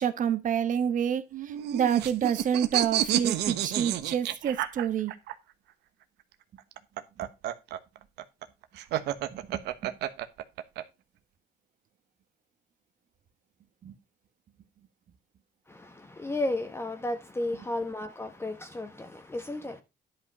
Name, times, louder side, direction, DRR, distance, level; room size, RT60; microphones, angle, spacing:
voice 1, 0.0-5.1 7.2-7.3 8.9-9.0 9.3-10.0 13.8-14.0, right 8 dB, 50° right, 1.4 m, -28 dB
sound 1, 1.3-5.3 6.6-10.8, right 13 dB, 80° right, 1.1 m, -30 dB
voice 2, 15.7-19.8, left 2 dB, 15° left, 1.3 m, -33 dB
11.0 x 5.5 x 5.3 m
cardioid pair, 110°, 17 cm